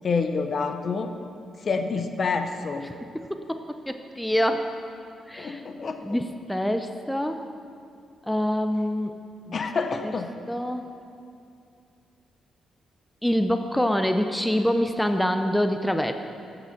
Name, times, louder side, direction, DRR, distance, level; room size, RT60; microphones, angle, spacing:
voice 1, 0.0-1.1 1.6-2.8 5.4-6.2 9.5-10.3, left 4 dB, 50° left, 7 dB, 0.7 m, -27 dB
voice 2, 2.8-4.7 5.3-5.6 6.0-7.4 8.2-9.1 9.5-9.6 10.0-10.1 10.5-10.9 13.2-16.1, equal, 5° left, 7 dB, 0.5 m, -26 dB
7.5 x 6.7 x 7.2 m, 2.5 s
cardioid pair, 65°, 0 cm